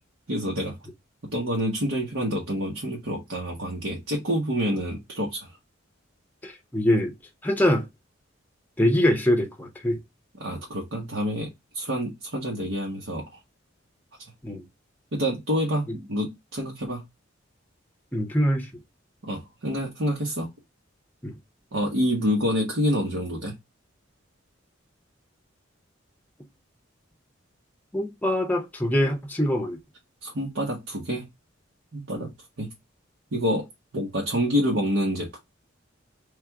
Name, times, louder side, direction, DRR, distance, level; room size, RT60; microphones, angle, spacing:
voice 1, 0.3-0.7 1.3-5.5 10.4-13.3 15.1-17.0 19.2-20.5 21.7-23.5 30.2-31.2 31.9-32.3 32.6-32.7 33.3-33.7 33.9-35.4, equal, 80° right, 1.1 m, -27 dB
voice 2, 6.4-7.1 7.4-7.9 8.8-10.0 14.4-14.6 18.1-18.7 21.2-21.3 27.9-29.8 32.2-32.3, left 1 dB, 10° left, 0.6 m, -23 dB
3.3 x 2.4 x 4.4 m
head